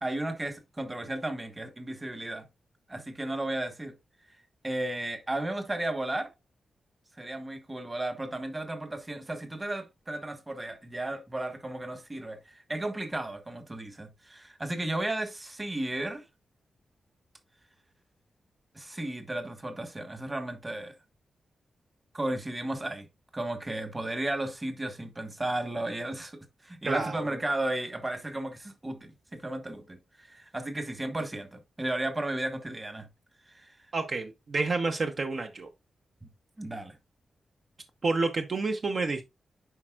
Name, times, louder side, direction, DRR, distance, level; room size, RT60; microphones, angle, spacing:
voice 1, 0.0-2.4 2.9-3.9 4.6-6.3 7.2-16.2 18.7-20.9 22.1-23.1 23.3-33.1 33.5-33.7 36.6-36.9, right 1 dB, 20° right, 1.3 m, -34 dB
voice 2, 26.9-27.4 33.9-35.7 38.0-39.2, right 3 dB, 45° right, 0.8 m, -29 dB
10.5 x 4.3 x 2.4 m
wide cardioid pair, 135°, 0 cm